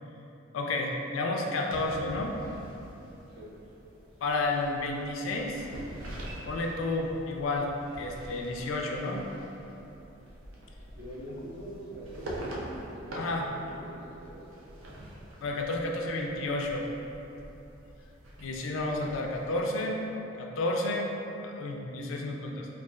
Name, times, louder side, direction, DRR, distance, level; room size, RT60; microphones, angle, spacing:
voice 1, 0.5-2.4 4.2-5.7 6.4-7.7 8.0-9.2 13.2-13.5 15.4-16.9 18.4-20.0 20.4-21.1 21.4-22.7, left 2 dB, 85° left, 1 dB, 0.4 m, -31 dB
sound 1, 1.7-19.6, right 1 dB, 85° right, 0.5 m, -45 dB
voice 2, 11.0-12.7 13.0-14.4, right 1 dB, 65° right, -8 dB, 0.9 m, -43 dB
3.9 x 2.3 x 2.3 m, 2.9 s
head